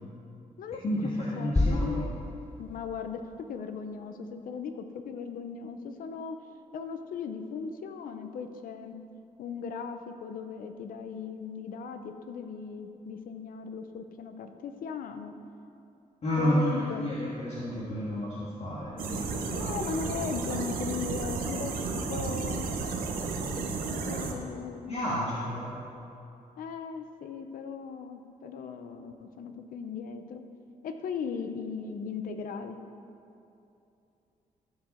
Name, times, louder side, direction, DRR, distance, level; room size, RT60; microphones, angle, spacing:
voice 1, 0.8-2.0 16.2-19.7 24.9-25.7, equal, 50° left, -8 dB, 1.6 m, -31 dB
voice 2, 1.4-2.2 2.6-3.2 3.5-6.4 6.7-9.0 9.4-15.3 16.4-17.0 19.5-22.7 23.9-25.2 26.6-30.4 30.8-32.8, left 6 dB, 85° left, 7 dB, 0.7 m, -38 dB
sound 1, 1.6-3.4, left 2 dB, 15° left, 0.5 m, -30 dB
sound 2, 19.0-24.3, right 4 dB, 90° right, 0.9 m, -33 dB
14.5 x 4.9 x 4.4 m, 2.7 s
cardioid pair, 95°, 14 cm